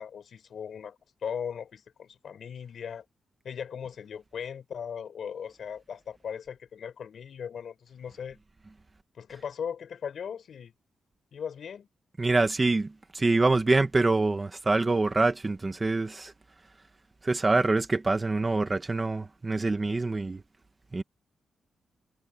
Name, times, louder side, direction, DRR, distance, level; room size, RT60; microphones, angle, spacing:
voice 1, 0.0-3.0 3.4-8.4 9.2-10.7 11.3-11.9, left 7 dB, 55° left, 5.0 m, -38 dB
voice 2, 12.2-16.3 17.2-20.4 20.9-21.0, right 3 dB, 20° right, 1.1 m, -25 dB
wide cardioid pair, 165°, 0 cm